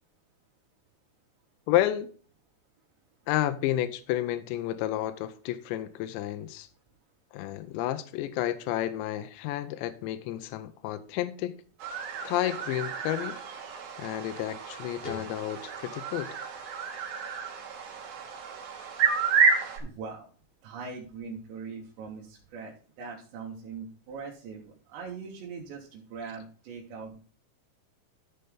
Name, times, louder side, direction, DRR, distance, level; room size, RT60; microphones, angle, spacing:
voice 1, 1.7-2.1 3.3-6.7 7.3-11.5 12.2-13.4 14.0-16.3, left 13 dB, 85° left, 2.9 m, -31 dB
sound 1, 11.8-19.8, right 6 dB, 55° right, 2.8 m, -30 dB
sound 2, 15.0-17.9, left 3 dB, 15° left, 2.0 m, -47 dB
voice 2, 19.8-20.3 20.6-27.2, right 5 dB, 80° right, 3.7 m, -41 dB
13.5 x 5.4 x 3.7 m
omnidirectional pair, 5.1 m